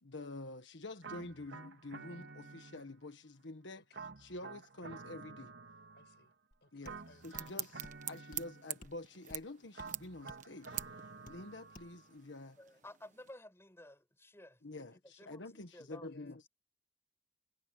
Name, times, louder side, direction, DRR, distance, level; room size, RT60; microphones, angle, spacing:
voice 1, 0.0-3.8 4.2-5.5 6.7-12.6 14.6-16.5, left 2 dB, 85° left, 1.5 m, -48 dB
sound 1, 1.0-3.1 3.9-6.3 6.8-8.9 9.7-12.1, right 4 dB, 80° right, 2.6 m, -51 dB
voice 2, 3.7-4.1 6.0-6.3 6.6-7.9 16.0-16.4, left 2 dB, 65° left, 6.1 m, -65 dB
sound 2, 6.5-6.6 6.8-7.0 7.3-7.5 7.8-8.0 8.3-8.5 8.8-9.0 9.3-9.5 9.8-9.9 10.3-10.4 10.8-10.9 11.3-11.4 11.7-11.9, left 1 dB, 45° left, 1.9 m, -54 dB
sound 3, 6.9-13.3, right 12 dB, 45° right, 1.3 m, -47 dB
voice 3, 12.6-16.1, left 1 dB, 15° left, 6.8 m, -54 dB
head